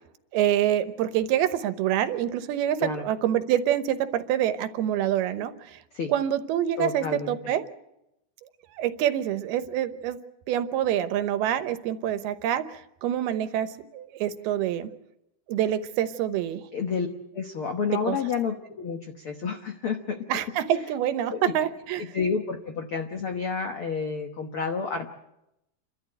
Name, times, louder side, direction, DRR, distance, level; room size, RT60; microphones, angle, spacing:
voice 1, 0.3-5.8 6.1-7.7 8.8-10.2 10.5-14.9 15.5-16.6 18.1-18.2 20.3-22.0, right 11 dB, 85° right, 11 dB, 2.9 m, -26 dB
voice 2, 6.8-7.4 16.7-17.1 17.3-20.3 21.3-21.5 22.0-25.1, left 5 dB, 85° left, 5 dB, 1.2 m, -30 dB
29.5 x 12.5 x 9.0 m, 0.88 s
omnidirectional pair, 4.4 m